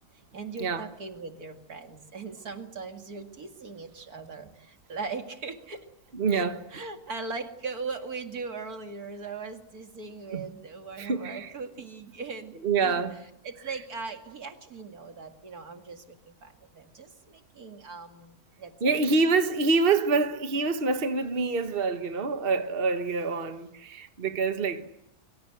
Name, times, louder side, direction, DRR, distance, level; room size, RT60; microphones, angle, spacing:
voice 1, 0.1-5.9 6.3-19.0, right 4 dB, 80° right, 2.8 m, -39 dB
voice 2, 6.1-6.6 10.3-10.5 11.0-11.5 12.6-13.1 18.8-24.9, right 4 dB, 40° right, 1.6 m, -26 dB
24.5 x 24.0 x 7.8 m
omnidirectional pair, 1.6 m